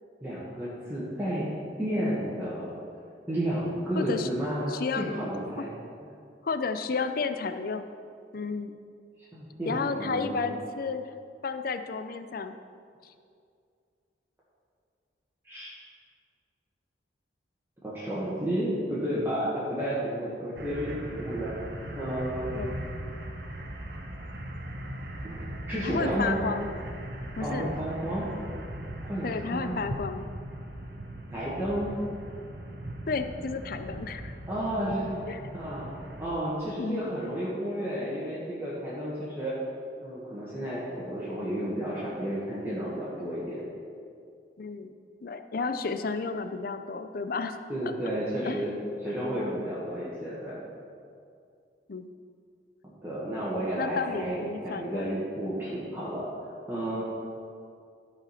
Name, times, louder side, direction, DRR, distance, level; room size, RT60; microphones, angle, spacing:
voice 1, 0.2-1.5 1.8-2.7 3.3-5.7 6.0-6.1 9.3-10.5 15.4-15.7 17.8-21.5 21.9-22.8 25.2-26.4 27.4-28.3 29.0-29.8 31.3-32.0 34.5-35.9 36.2-39.5 40.0-43.6 47.7-48.7 49.0-50.6 53.0-56.3 56.7-57.0, right 1 dB, 10° right, -9 dB, 1.6 m, -32 dB
voice 2, 4.0-4.3 4.7-5.1 6.4-7.8 8.3-8.7 9.7-11.2 11.4-12.6 13.0-13.1 22.5-22.8 25.8-26.7 27.4-27.7 29.2-30.3 33.1-34.3 35.3-35.4 36.8-37.0 44.6-44.9 45.2-47.6 48.5-48.6 51.9-52.1 53.8-55.1, left 4 dB, 50° left, 9 dB, 0.5 m, -32 dB
sound 1, 20.6-36.3, right 1 dB, 60° right, 1.1 m, -39 dB
12.5 x 5.0 x 5.8 m, 2.3 s
head